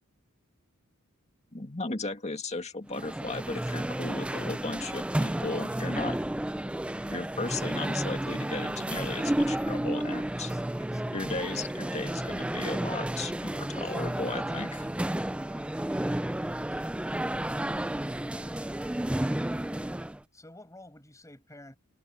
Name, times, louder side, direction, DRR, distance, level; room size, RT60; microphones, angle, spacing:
voice 1, 1.5-6.2 7.1-10.5 11.1-14.9, left 3 dB, 30° left, 2.1 m, -36 dB
sound 1, 2.9-20.2, right 1 dB, 5° right, 0.3 m, -32 dB
voice 2, 10.3-11.4 15.4-15.7 16.5-16.9 18.3-19.2 20.3-21.8, left 1 dB, 15° left, 7.1 m, -53 dB
head